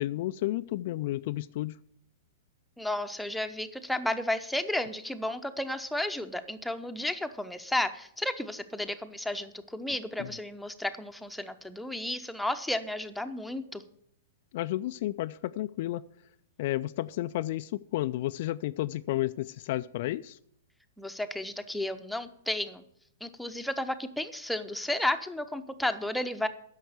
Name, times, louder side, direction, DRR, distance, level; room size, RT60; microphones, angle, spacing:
voice 1, 0.0-1.8 10.2-10.3 14.5-16.0 16.6-20.4, left 15 dB, 50° left, 12 dB, 0.3 m, -32 dB
voice 2, 2.8-13.8 21.0-22.8 23.2-26.5, left 1 dB, ahead, 7 dB, 0.8 m, -33 dB
10.0 x 6.5 x 8.1 m, 0.70 s
figure-of-eight pair, 105°, 0 cm